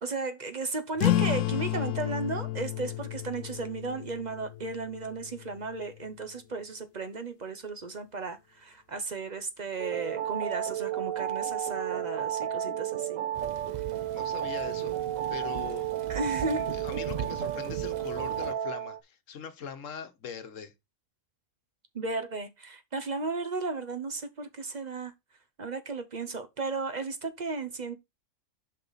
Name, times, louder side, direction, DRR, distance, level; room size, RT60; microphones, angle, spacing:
voice 1, 0.0-13.2 16.1-16.6 21.9-25.1 25.6-27.9, right 3 dB, 40° right, 0.8 m, -35 dB
sound 1, 1.0-6.0, left 12 dB, 90° left, 1.0 m, -31 dB
sound 2, 9.8-19.0, right 11 dB, 80° right, 1.1 m, -32 dB
Thunder / Rain, 13.3-18.5, right 8 dB, 60° right, 0.4 m, -40 dB
voice 2, 14.1-15.0 15.3-15.9 16.4-20.7, left 7 dB, 75° left, 1.3 m, -41 dB
6.7 x 5.5 x 4.0 m
omnidirectional pair, 1.3 m